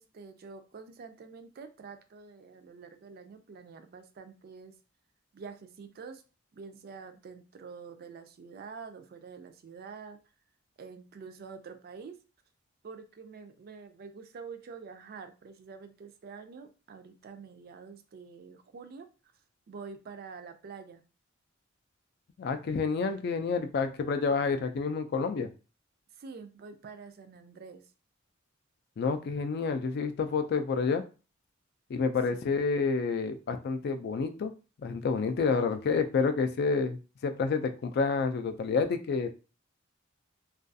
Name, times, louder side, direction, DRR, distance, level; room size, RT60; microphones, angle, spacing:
voice 1, 0.0-4.7 5.3-6.2 6.5-10.2 10.8-12.2 12.8-19.1 19.7-21.0 26.2-27.8 32.3-32.5, right 5 dB, 50° right, 8 dB, 0.3 m, -47 dB
voice 2, 22.4-25.5 29.0-31.0 31.9-34.5 34.8-39.3, left 4 dB, 50° left, 8 dB, 0.3 m, -29 dB
2.3 x 2.3 x 2.5 m, 0.33 s
head